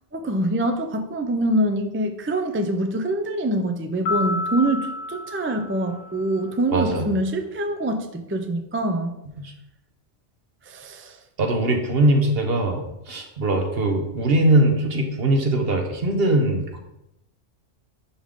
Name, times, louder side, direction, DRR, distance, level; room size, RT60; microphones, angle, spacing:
voice 1, 0.1-9.2 10.7-11.2, right 1 dB, 20° right, 4 dB, 0.3 m, -25 dB
sound 1, 4.1-6.6, left 2 dB, 70° left, 1.2 m, -30 dB
voice 2, 6.7-7.1 11.4-12.8 13.1-16.8, right 1 dB, 55° right, 3 dB, 1.2 m, -21 dB
11.0 x 3.8 x 3.7 m, 0.86 s
omnidirectional pair, 1.3 m